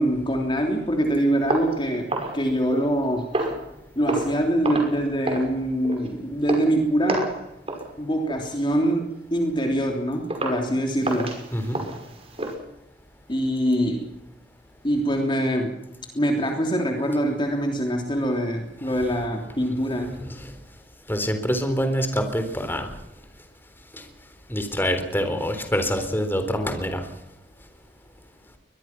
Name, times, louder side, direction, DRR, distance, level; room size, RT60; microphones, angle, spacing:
voice 1, 0.0-3.3 3.9-7.4 8.0-11.4 13.3-14.1 14.8-15.7 16.1-20.2, right 1 dB, 30° left, 3 dB, 3.2 m, -24 dB
sound 1, 1.5-3.0 3.3-3.7 4.1-4.4 4.6-5.0 5.3-5.5 5.8-6.1 6.5-6.7 7.1-7.4 7.7-7.9 8.3-8.5 9.0-9.1 9.6-9.7 10.3-10.6 11.0-12.5, right 2 dB, 35° right, 5.9 m, -29 dB
voice 2, 11.5-11.8 18.8-19.0 20.0-20.5 21.1-23.0 23.9-24.1 24.5-27.1, equal, 10° left, 7 dB, 3.8 m, -26 dB
23.0 x 21.5 x 6.0 m, 0.86 s
head